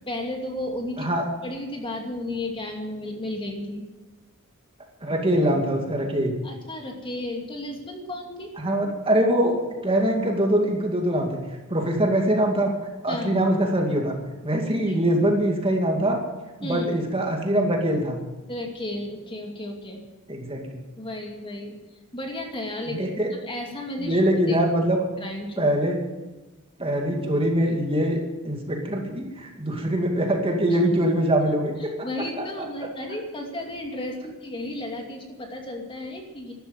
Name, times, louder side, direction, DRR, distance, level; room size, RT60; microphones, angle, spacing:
voice 1, 0.1-1.1 1.4-3.9 6.4-8.5 13.1-13.4 14.9-15.0 16.6-16.9 18.5-20.0 21.0-21.8 22.1-24.2 24.5-24.6 25.2-25.7 30.7-30.8 31.8-36.5, left 1 dB, 25° left, 1 dB, 2.6 m, -33 dB
voice 2, 5.0-6.4 8.6-9.6 9.8-11.4 11.7-12.7 13.0-14.1 14.4-16.2 16.6-18.2 20.3-20.8 22.9-23.3 24.0-25.0 25.6-26.0 26.8-28.2 28.4-31.9, right 1 dB, 25° right, 2 dB, 2.3 m, -23 dB
13.0 x 12.0 x 8.9 m, 1.1 s
head